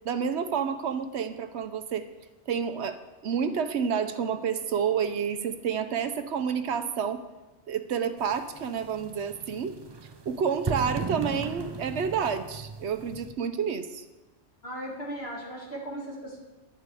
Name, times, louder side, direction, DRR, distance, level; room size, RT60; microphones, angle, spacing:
voice 1, 0.0-2.1 2.5-3.0 3.2-7.2 7.7-9.8 10.3-14.0, right 7 dB, 75° right, 10 dB, 1.0 m, -29 dB
sound 1, 8.2-13.3, right 4 dB, 35° right, 0.4 m, -37 dB
voice 2, 14.6-16.4, right 1 dB, 60° left, -3 dB, 2.7 m, -37 dB
11.0 x 10.0 x 4.8 m, 1.1 s
omnidirectional pair, 1.2 m